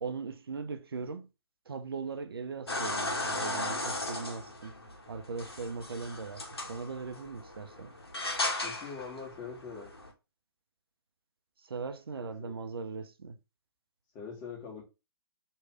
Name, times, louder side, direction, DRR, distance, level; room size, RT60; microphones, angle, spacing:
voice 1, 0.0-1.3 1.7-4.8 5.1-7.9 11.6-13.4, right 5 dB, 65° right, 0.6 m, -39 dB
sound 1, 2.7-10.1, left 2 dB, 75° left, 1.4 m, -36 dB
voice 2, 8.6-9.9 12.2-12.6 14.1-14.8, left 6 dB, 25° left, 1.7 m, -43 dB
3.2 x 3.2 x 4.4 m
figure-of-eight pair, 125°, 13 cm